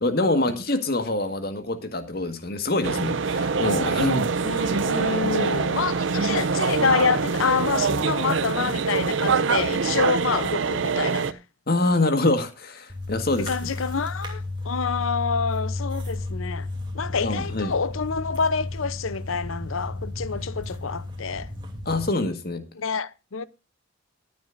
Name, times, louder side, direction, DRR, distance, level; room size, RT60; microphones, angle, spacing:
voice 1, 0.0-4.3 11.7-13.5 17.1-17.7 21.9-22.6, left 2 dB, 50° left, 1.7 m, -25 dB
sound 1, 2.8-11.3, right 5 dB, 65° right, 0.6 m, -24 dB
voice 2, 4.4-11.4 13.4-16.7 16.9-21.5 22.8-23.4, left 5 dB, 85° left, 0.7 m, -27 dB
sound 2, 12.9-22.1, left 2 dB, 25° right, 2.9 m, -33 dB
23.0 x 9.5 x 2.6 m
head